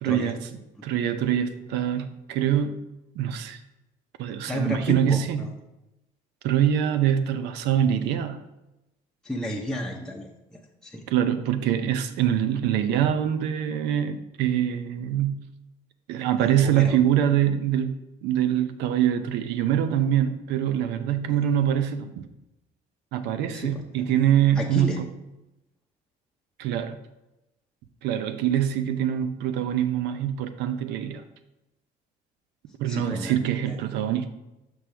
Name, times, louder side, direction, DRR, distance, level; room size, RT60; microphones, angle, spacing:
voice 1, 0.0-0.4 0.8-2.8 3.2-3.6 4.2-5.5 6.4-8.4 11.1-15.4 16.1-18.0 18.2-22.1 23.1-25.0 26.6-26.9 28.0-31.2 32.8-34.3, right 10 dB, 90° right, 9 dB, 0.6 m, -24 dB
voice 2, 4.5-5.5 9.2-11.0 16.4-17.0 23.5-24.1 24.6-25.0 32.9-33.3 33.7-33.8, equal, 5° left, 0 dB, 0.7 m, -32 dB
6.3 x 6.0 x 3.4 m, 0.96 s
cardioid pair, 110°, 17 cm